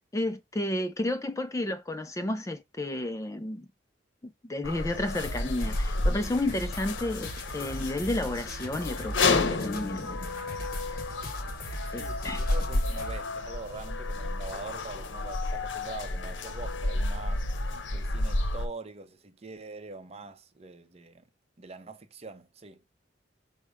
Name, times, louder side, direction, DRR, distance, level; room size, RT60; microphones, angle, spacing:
voice 1, 0.1-3.7 4.2-10.2 11.9-12.4, left 1 dB, 15° left, 0.3 m, -32 dB
sound 1, 4.6-18.7, left 2 dB, 80° left, 0.7 m, -31 dB
sound 2, 5.2-13.2, equal, 50° left, 1.0 m, -39 dB
voice 2, 11.9-17.4 17.9-21.2 21.6-22.8, right 3 dB, 35° right, 0.6 m, -43 dB
5.1 x 2.1 x 4.7 m
head